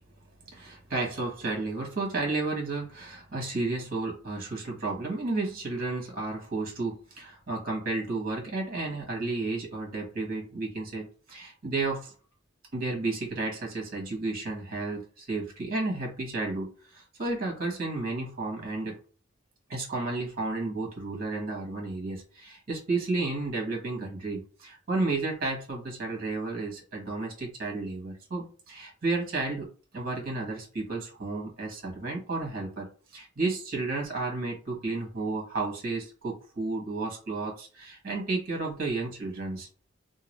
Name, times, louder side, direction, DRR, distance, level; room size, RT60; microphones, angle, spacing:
voice 1, 0.5-12.1 12.7-19.0 19.7-29.7 29.9-32.9 33.1-39.7, right 3 dB, 50° right, 0 dB, 1.4 m, -32 dB
2.9 x 2.3 x 3.1 m, 0.38 s
head